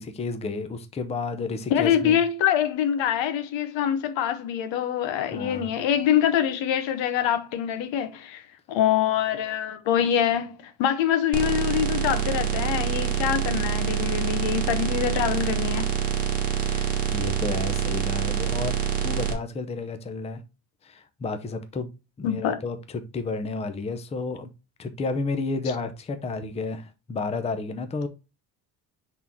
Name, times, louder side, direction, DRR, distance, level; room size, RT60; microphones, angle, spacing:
voice 1, 0.0-2.2 5.3-5.7 16.6-18.8 19.0-20.4 20.8-21.9 22.2-22.8 23.1-24.5 24.8-28.1, left 3 dB, 15° left, 0.5 m, -31 dB
voice 2, 1.7-16.0 22.2-22.6, left 9 dB, 90° left, 1.1 m, -25 dB
sound 1, 11.3-19.3, right 9 dB, 20° right, 1.3 m, -26 dB
6.2 x 3.7 x 4.3 m
cardioid pair, 175°, 44 cm